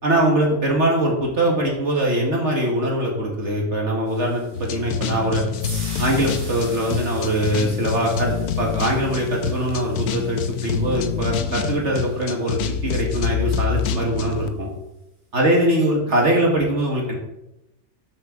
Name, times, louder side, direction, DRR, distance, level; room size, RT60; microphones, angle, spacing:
voice 1, 0.0-5.4 6.0-14.7 15.3-17.2, right 1 dB, 50° right, -1 dB, 1.9 m, -22 dB
sound 1, 4.1-12.4, right 2 dB, 70° right, 3.3 m, -43 dB
sound 2, 4.5-14.5, left 7 dB, 80° left, 1.2 m, -26 dB
12.5 x 6.5 x 3.8 m, 0.90 s
omnidirectional pair, 1.6 m